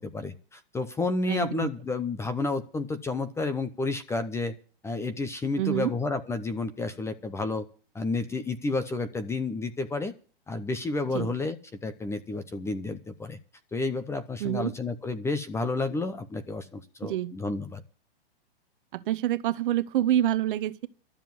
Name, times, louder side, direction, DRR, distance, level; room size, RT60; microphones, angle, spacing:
voice 1, 0.0-4.6 4.8-7.7 7.9-10.1 10.5-11.6 11.8-13.4 13.7-17.8, left 3 dB, 10° left, 0.8 m, -31 dB
voice 2, 1.3-1.7 5.6-5.9 11.1-11.3 14.4-14.7 17.0-17.3 18.9-20.9, right 12 dB, 55° right, 0.9 m, -27 dB
13.0 x 7.4 x 9.4 m
hypercardioid pair, 135°, 31 cm